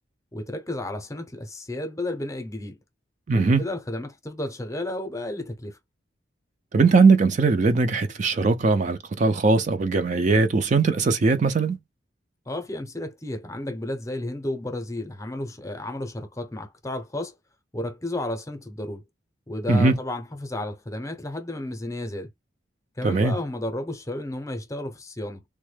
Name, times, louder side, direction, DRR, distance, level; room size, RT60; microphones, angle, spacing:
voice 1, 0.3-2.8 3.3-5.8 12.5-17.3 17.7-19.0 19.5-22.3 23.0-25.4, left 1 dB, 15° left, 0.6 m, -32 dB
voice 2, 3.3-3.7 6.7-11.8 19.7-19.9 23.0-23.4, right 4 dB, 40° right, 0.4 m, -20 dB
3.5 x 2.2 x 3.2 m
head